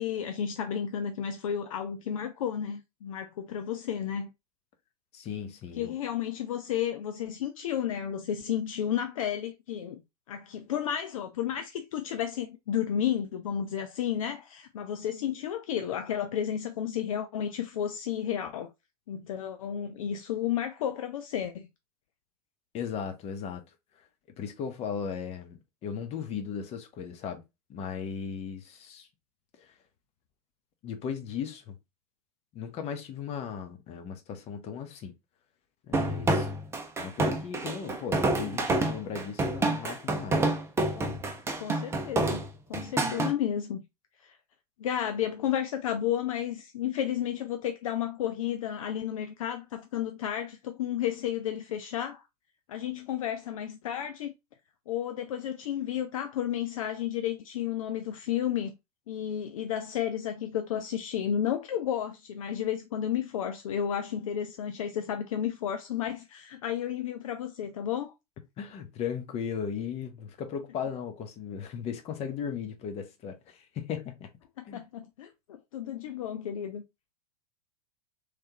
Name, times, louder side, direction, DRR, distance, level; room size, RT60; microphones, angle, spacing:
voice 1, 0.0-4.3 5.8-10.0 10.3-18.7 19.1-21.7 41.0-41.2 41.6-42.4 42.7-43.8 44.2-44.4 44.8-52.2 52.7-54.3 54.9-58.7 59.1-68.1 74.6-76.8, left 9 dB, 55° left, 0.4 m, -32 dB
voice 2, 5.1-5.9 22.7-23.6 24.4-27.4 27.7-29.1 29.6-29.7 30.8-31.8 32.5-35.1 35.8-36.5 37.0-40.5 68.6-74.3 74.7-74.8, left 7 dB, 30° left, 0.9 m, -37 dB
sound 1, 35.9-43.3, right 2 dB, 15° right, 0.7 m, -28 dB
3.2 x 3.2 x 2.8 m
figure-of-eight pair, 90°, 20 cm